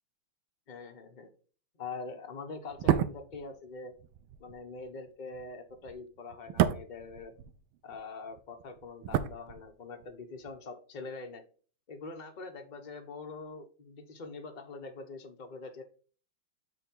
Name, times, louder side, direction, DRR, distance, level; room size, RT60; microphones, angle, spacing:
voice 1, 0.7-1.3 1.8-3.9 4.4-7.3 7.8-11.4 11.9-15.8, left 4 dB, 55° left, 4 dB, 0.5 m, -44 dB
sound 1, 2.7-8.0 8.3-10.1 10.4-10.5, right 11 dB, 75° right, 1.3 m, -32 dB
7.7 x 3.5 x 4.4 m, 0.40 s
omnidirectional pair, 2.3 m